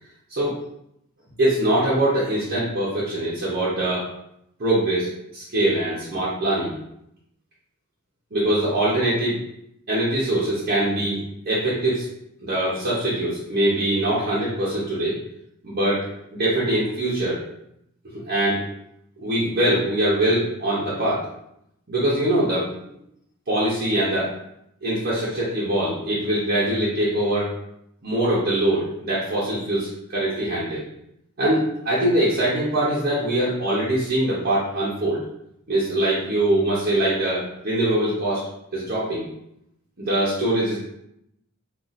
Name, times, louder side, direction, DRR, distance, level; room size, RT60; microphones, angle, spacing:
voice 1, 0.3-0.6 1.4-4.1 4.6-6.7 8.3-9.4 9.9-12.1 12.4-15.2 15.6-17.4 18.1-18.6 19.2-21.3 21.9-22.8 23.5-24.3 24.8-27.6 28.0-30.8 31.4-35.3 35.7-38.4 38.7-39.3 40.0-40.9, right 1 dB, 50° right, -8 dB, 0.8 m, -23 dB
4.0 x 2.4 x 2.5 m, 0.78 s
head